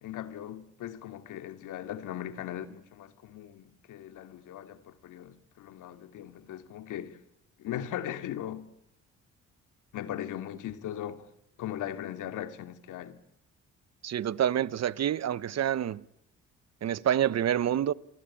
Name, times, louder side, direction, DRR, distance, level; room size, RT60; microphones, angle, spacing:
voice 1, 0.0-7.2 7.6-8.7 9.9-11.3 11.6-13.2, left 11 dB, 85° left, 2.6 m, -39 dB
voice 2, 14.0-16.0 16.8-17.9, right 10 dB, 60° right, 1.2 m, -27 dB
28.5 x 23.5 x 8.7 m
cardioid pair, 90°, 30 cm